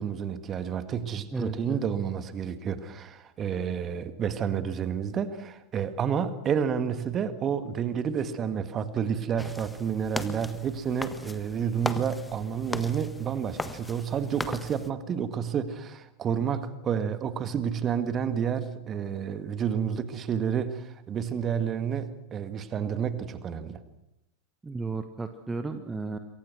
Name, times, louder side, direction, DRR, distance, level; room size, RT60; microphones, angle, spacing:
voice 1, 0.0-23.8, right 7 dB, 25° right, 11 dB, 2.0 m, -30 dB
voice 2, 1.3-1.8 24.6-26.2, right 3 dB, 10° right, 9 dB, 1.3 m, -34 dB
sound 1, 9.4-14.9, left 2 dB, 10° left, 1.4 m, -37 dB
27.5 x 23.5 x 6.3 m, 0.85 s
figure-of-eight pair, 90°, 0 cm